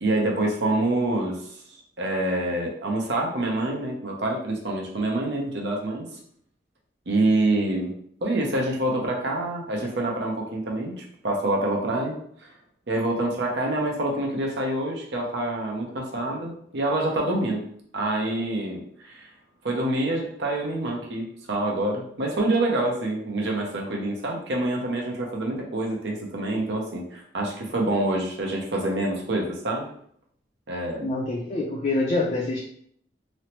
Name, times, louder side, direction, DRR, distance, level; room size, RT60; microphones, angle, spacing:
voice 1, 0.0-1.5 2.0-6.2 7.1-7.9 8.2-12.2 12.9-17.6 17.9-19.2 19.6-29.9 30.7-31.1, right 2 dB, 80° right, -1 dB, 0.7 m, -26 dB
voice 2, 31.0-32.6, left 2 dB, 40° left, -2 dB, 0.4 m, -26 dB
3.1 x 2.0 x 2.9 m, 0.65 s
head